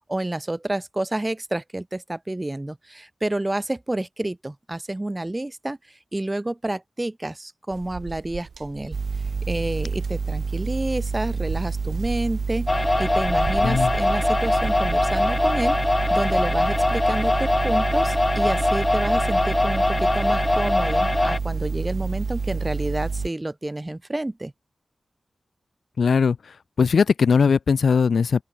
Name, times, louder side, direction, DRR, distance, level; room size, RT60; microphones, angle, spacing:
voice 1, 0.1-5.8 6.1-9.0 9.5-15.8 16.1-24.5, right 1 dB, 20° right, 6.0 m, -29 dB
sound 1, 7.7-17.4, right 6 dB, 80° right, 2.3 m, -40 dB
sound 2, 8.9-23.3, right 4 dB, 60° right, 2.7 m, -28 dB
sound 3, 12.7-21.4, left 2 dB, 25° left, 0.7 m, -22 dB
voice 2, 26.0-28.4, left 5 dB, 75° left, 0.9 m, -20 dB
open air
wide cardioid pair, 75°, 0 cm